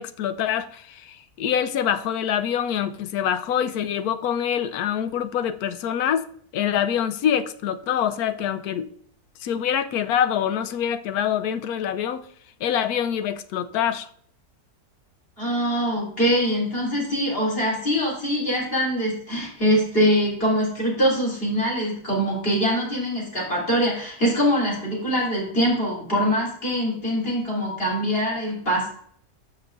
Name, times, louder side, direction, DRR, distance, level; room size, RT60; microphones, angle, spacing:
voice 1, 0.0-6.3 6.5-8.9 9.4-12.3 12.6-14.1, left 9 dB, 80° left, 1.1 m, -25 dB
voice 2, 15.4-28.9, equal, 40° left, 3.5 m, -23 dB
13.5 x 5.4 x 2.5 m
omnidirectional pair, 1.6 m